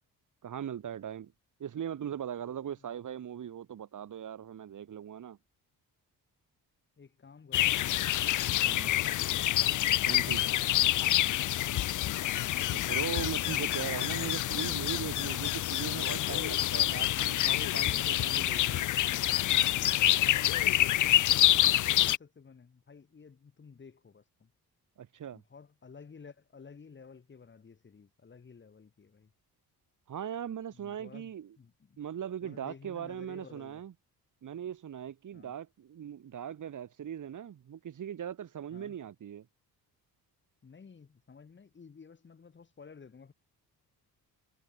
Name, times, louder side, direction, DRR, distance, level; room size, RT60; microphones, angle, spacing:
voice 1, 0.4-1.3 1.6-5.4 8.6-8.9 10.0-10.5 12.7-18.9 25.0-25.4 30.1-31.5 32.0-33.9 34.4-39.5, right 9 dB, 55° right, 3.6 m, -39 dB
voice 2, 7.0-8.1 8.5-9.3 10.4-11.2 11.5-12.3 19.9-24.5 25.3-29.3 30.7-31.3 31.6-32.0 32.4-33.8 35.3-35.5 38.7-39.0 40.6-43.3, left 5 dB, 30° left, 3.6 m, -53 dB
sound 1, 7.5-22.2, left 14 dB, 55° left, 0.6 m, -27 dB
cardioid pair, 150°, 38 cm